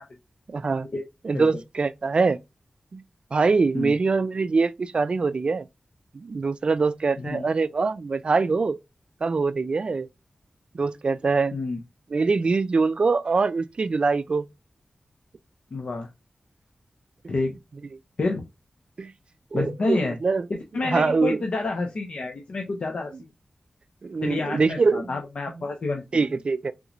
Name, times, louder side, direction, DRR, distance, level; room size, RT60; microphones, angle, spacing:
voice 1, 0.5-0.9 1.2-2.4 2.9-3.0 3.3-5.7 6.1-8.8 9.2-10.1 10.7-11.5 12.1-14.5 19.0-19.1 19.5-20.5 20.8-21.4 24.0-25.1 26.1-26.7, right 4 dB, 55° right, 0.3 m, -23 dB
voice 2, 7.2-7.5 11.5-11.8 15.7-16.1 17.3-17.5 18.2-18.4 19.5-20.2 20.7-23.1 24.2-26.2, left 3 dB, 70° left, 0.7 m, -28 dB
3.6 x 3.0 x 2.5 m
wide cardioid pair, 65°, 2 cm